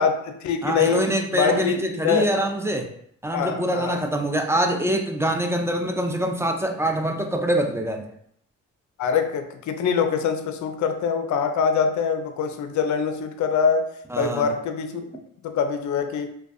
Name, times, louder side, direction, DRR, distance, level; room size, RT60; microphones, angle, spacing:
voice 1, 0.0-2.5 3.3-4.0 9.0-13.9 14.2-15.1 15.4-16.3, left 6 dB, 55° left, 6 dB, 0.5 m, -24 dB
voice 2, 0.6-2.9 3.2-8.0 14.1-14.5, right 1 dB, 10° right, 3 dB, 0.3 m, -24 dB
2.4 x 2.2 x 2.3 m, 0.68 s
hypercardioid pair, 40°, 36 cm